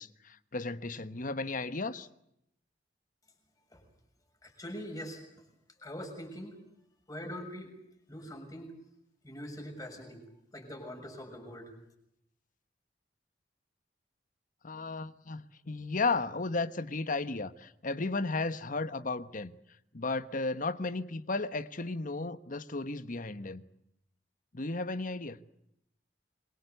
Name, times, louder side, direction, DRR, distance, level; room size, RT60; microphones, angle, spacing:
voice 1, 0.0-2.1 14.6-19.5 19.9-23.6 24.5-25.4, left 3 dB, 50° left, 1.2 m, -34 dB
voice 2, 4.4-5.2 5.8-6.6 7.1-7.7 8.1-8.7 9.2-10.2 10.5-11.7, equal, 20° left, 6.6 m, -43 dB
26.5 x 23.0 x 8.0 m
head